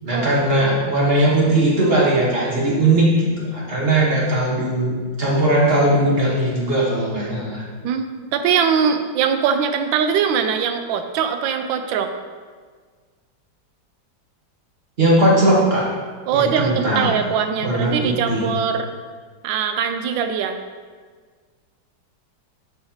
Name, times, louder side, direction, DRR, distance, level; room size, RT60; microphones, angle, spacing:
voice 1, 0.0-4.9 5.2-7.6 15.0-15.9 16.3-17.2 17.6-18.5, right 1 dB, 35° right, -5 dB, 1.2 m, -18 dB
voice 2, 7.8-12.1 16.3-18.9 19.4-20.6, right 7 dB, 80° right, 7 dB, 1.3 m, -21 dB
7.7 x 5.4 x 2.8 m, 1.6 s
omnidirectional pair, 2.1 m